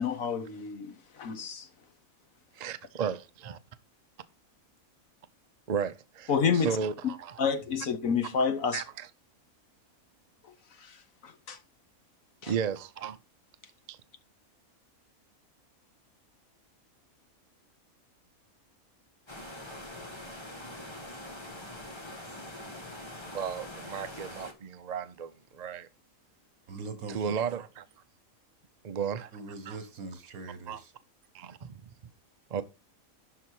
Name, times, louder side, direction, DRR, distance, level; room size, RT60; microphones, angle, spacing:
voice 1, 0.0-1.7 6.3-6.7 7.4-8.8 11.2-11.6 12.4-12.5, left 6 dB, 70° left, 1.6 m, -29 dB
voice 2, 2.5-3.6 5.7-7.4 8.7-9.1 12.5-13.2 13.9-14.0 23.3-25.9 27.1-27.9 28.8-29.3 29.7-29.8 30.7-30.8 31.3-31.8 32.5-32.6, right 7 dB, 45° right, 0.5 m, -34 dB
sound 1, 19.3-24.5, left 1 dB, 20° left, 1.6 m, -43 dB
voice 3, 26.7-27.3 29.3-30.9, right 3 dB, 80° right, 1.7 m, -42 dB
11.5 x 4.2 x 4.7 m
omnidirectional pair, 1.5 m